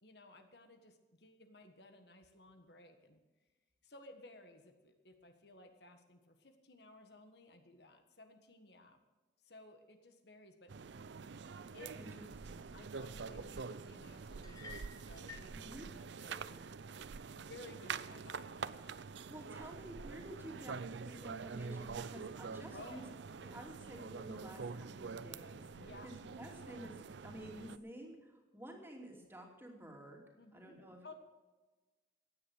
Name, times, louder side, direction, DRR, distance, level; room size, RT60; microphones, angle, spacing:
voice 1, 0.0-3.2 3.8-9.0 9.4-10.7 11.7-11.9 12.7-16.6 17.3-19.1 22.7-23.1 25.7-26.1 30.4-31.1, left 2 dB, 60° left, 6 dB, 1.5 m, -57 dB
sound 1, 10.7-27.8, right 5 dB, 70° right, 0.5 m, -46 dB
voice 2, 11.9-12.7 15.5-15.8 16.3-16.6 19.3-20.8 21.0-23.0 23.3-27.0 27.2-30.2 30.5-31.1, right 1 dB, 10° right, 1 dB, 2.8 m, -51 dB
sound 2, 14.4-15.5, left 4 dB, 20° left, 1.7 m, -52 dB
16.0 x 10.0 x 6.4 m, 1.2 s
head